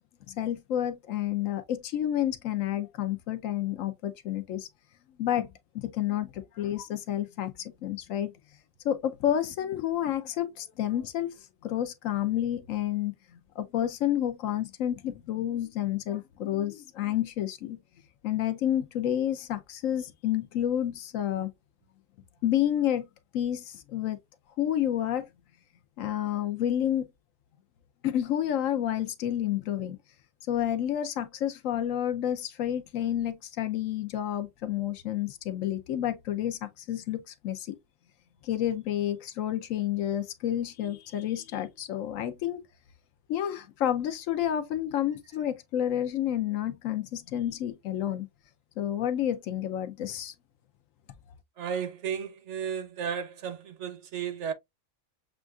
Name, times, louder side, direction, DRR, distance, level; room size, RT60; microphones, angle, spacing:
voice 1, 0.3-4.7 5.2-5.5 5.7-8.3 8.8-11.4 11.6-17.8 18.2-21.5 22.4-23.0 23.3-24.2 24.6-25.3 26.0-27.1 28.0-30.0 30.5-37.8 38.4-42.6 43.3-48.3 48.8-50.3, left 11 dB, 70° left, 1.0 m, -30 dB
voice 2, 51.6-54.5, right 7 dB, 65° right, 0.8 m, -34 dB
7.1 x 2.5 x 2.3 m
omnidirectional pair, 1.5 m